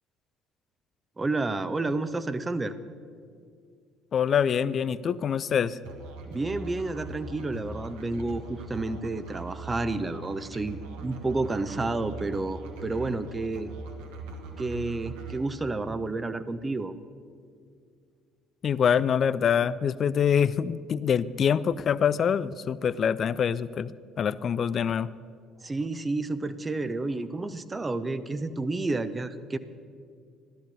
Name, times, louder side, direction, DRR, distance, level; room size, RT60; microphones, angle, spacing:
voice 1, 1.2-2.7 6.3-13.7 14.6-16.9 25.6-29.6, right 2 dB, 20° right, 12 dB, 0.8 m, -30 dB
voice 2, 4.1-5.8 18.6-23.9 24.2-25.1, left 8 dB, 40° left, 18 dB, 0.4 m, -25 dB
Musical instrument, 5.8-15.4, right 3 dB, 65° right, 1.6 m, -41 dB
15.0 x 13.0 x 6.8 m, 2.2 s
figure-of-eight pair, 55°, 0 cm